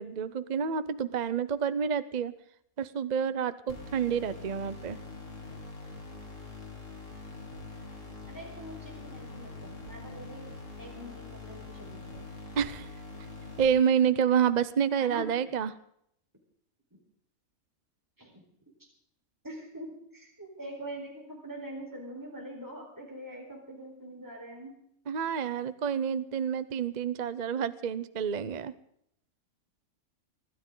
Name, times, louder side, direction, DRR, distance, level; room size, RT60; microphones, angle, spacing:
voice 1, 0.0-2.3 2.8-5.0 12.6-12.9 13.6-15.7 25.1-28.7, right 7 dB, 45° right, 13 dB, 0.6 m, -28 dB
sound 1, 3.7-13.7, left 3 dB, 55° left, 3.3 m, -44 dB
voice 2, 8.3-10.5 10.8-12.2 15.0-15.5 16.9-17.0 18.2-18.4 18.8-18.9 19.4-24.7, right 1 dB, 10° right, -1 dB, 4.3 m, -44 dB
25.0 x 12.5 x 3.9 m, 0.71 s
omnidirectional pair, 1.6 m